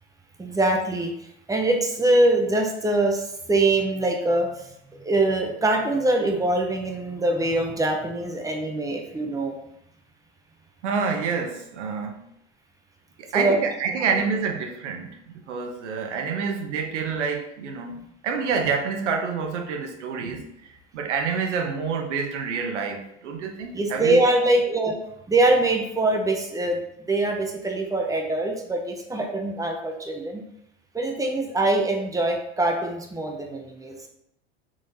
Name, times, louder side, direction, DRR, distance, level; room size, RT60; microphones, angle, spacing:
voice 1, 0.4-1.1 1.5-4.5 4.9-9.6 13.3-13.6 23.7-25.0 25.3-26.8 27.1-30.4 30.9-34.0, right 2 dB, 10° right, 3 dB, 0.6 m, -23 dB
voice 2, 10.8-12.2 13.2-15.2 15.5-18.0 18.2-20.4 20.9-24.2, right 5 dB, 85° right, 3 dB, 0.8 m, -27 dB
3.8 x 3.2 x 2.6 m, 0.74 s
hypercardioid pair, 95°, 35 cm